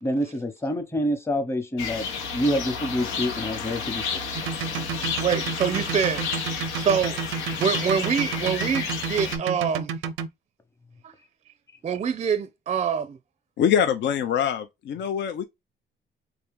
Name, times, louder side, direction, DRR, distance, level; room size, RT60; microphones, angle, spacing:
voice 1, 0.0-2.0 2.3-4.4, equal, 15° left, 1.0 m, -27 dB
sound 1, 1.8-9.4, left 5 dB, 85° left, 1.0 m, -31 dB
sound 2, 4.3-10.3, right 6 dB, 85° right, 0.5 m, -30 dB
voice 2, 5.2-6.3 6.8-7.2 7.6-9.9 11.0-11.1 11.8-13.2, right 7 dB, 35° right, 0.5 m, -25 dB
voice 3, 13.6-15.4, left 8 dB, 65° left, 0.6 m, -24 dB
3.5 x 2.9 x 3.5 m
cardioid pair, 90°, 20 cm